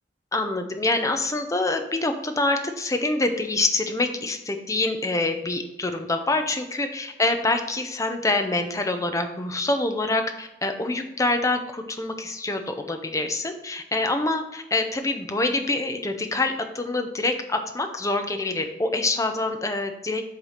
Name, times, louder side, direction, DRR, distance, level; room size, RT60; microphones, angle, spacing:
voice 1, 0.3-20.2, left 2 dB, 20° left, 6 dB, 0.7 m, -26 dB
8.0 x 3.4 x 5.7 m, 0.89 s
head